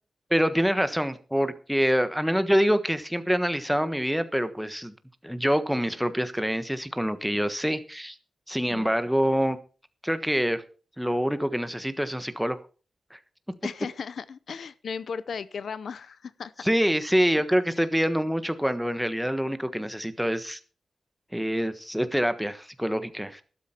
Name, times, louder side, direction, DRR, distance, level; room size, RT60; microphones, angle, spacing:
voice 1, 0.3-4.9 5.2-8.2 8.5-9.6 10.0-10.6 11.0-12.6 13.1-13.2 16.6-20.6 21.3-23.4, equal, ahead, 1.3 m, -26 dB
voice 2, 13.6-16.7 17.8-17.9, left 6 dB, 75° left, 0.6 m, -36 dB
12.5 x 12.5 x 4.4 m
wide cardioid pair, 100°, 0 cm